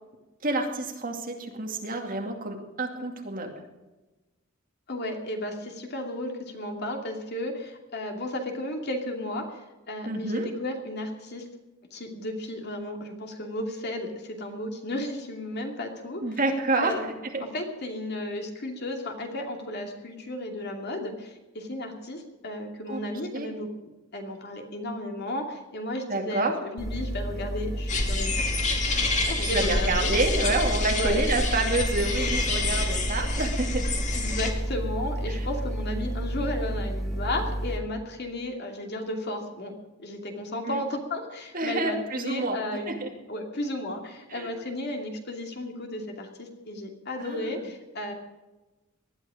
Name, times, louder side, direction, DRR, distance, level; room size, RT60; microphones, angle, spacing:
voice 1, 0.4-3.5 10.1-10.5 16.2-17.4 22.9-23.0 23.3-23.5 26.1-26.6 29.4-33.8 35.3-35.4 40.6-40.8 41.5-42.6 42.9-43.1 44.3-44.5 47.2-47.7, right 2 dB, 40° right, 2 dB, 2.5 m, -28 dB
voice 2, 4.9-9.6 9.9-11.4 11.9-16.2 16.8-17.0 17.4-23.7 24.1-28.8 29.2-30.2 30.9-31.2 34.1-43.0 43.3-48.1, left 1 dB, 50° left, 3 dB, 2.6 m, -34 dB
sound 1, 26.8-37.8, right 1 dB, ahead, 3.6 m, -31 dB
sound 2, 27.9-34.5, left 3 dB, 35° left, 2.2 m, -28 dB
19.5 x 12.5 x 5.1 m, 1.1 s
head